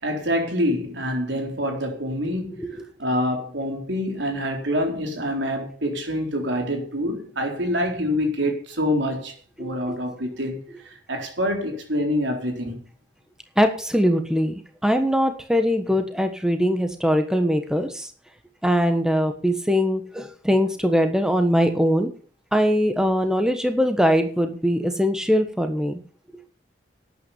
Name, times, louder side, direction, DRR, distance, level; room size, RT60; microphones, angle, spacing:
voice 1, 0.0-12.8, equal, 80° right, 4.0 m, -26 dB
voice 2, 9.6-10.0 13.6-18.1 18.6-22.1 22.5-26.0, equal, 5° right, 1.3 m, -21 dB
12.0 x 9.3 x 6.9 m
head